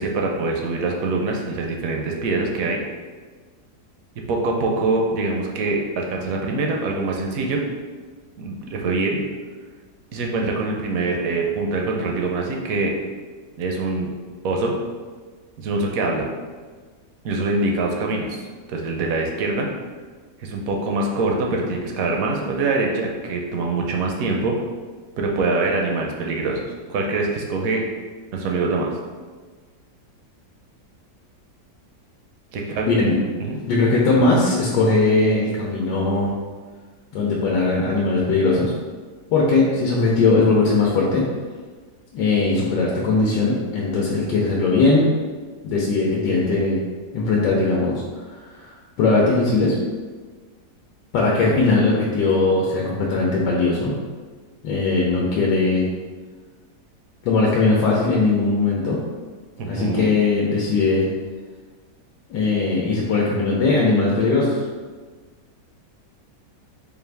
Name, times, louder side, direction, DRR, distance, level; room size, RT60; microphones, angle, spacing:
voice 1, 0.0-2.8 4.3-7.6 8.4-9.2 10.1-12.9 13.6-14.1 14.4-14.7 15.6-16.3 17.2-18.4 18.7-19.7 20.4-24.6 25.2-27.8 28.3-28.9 32.5-32.9 33.4-33.6 59.6-60.1, right 3 dB, 70° right, 0 dB, 0.9 m, -24 dB
voice 2, 33.7-36.3 37.1-38.7 39.3-41.2 42.1-45.1 45.6-46.8 47.1-49.8 51.1-53.9 54.6-55.8 57.2-59.0 59.6-61.1 62.3-64.6, left 3 dB, 85° left, -3 dB, 1.3 m, -19 dB
4.6 x 2.5 x 3.3 m, 1.4 s
omnidirectional pair, 1.8 m